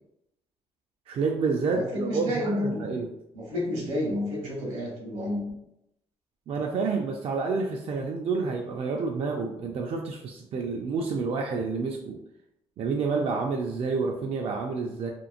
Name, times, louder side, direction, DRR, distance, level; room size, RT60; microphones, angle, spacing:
voice 1, 1.1-3.1 6.5-12.2 12.8-15.1, right 4 dB, 55° right, 1 dB, 0.4 m, -29 dB
voice 2, 1.7-2.9 3.3-5.4, left 1 dB, 80° right, -2 dB, 1.2 m, -30 dB
2.9 x 2.5 x 2.4 m, 0.83 s
cardioid pair, 85°, 12 cm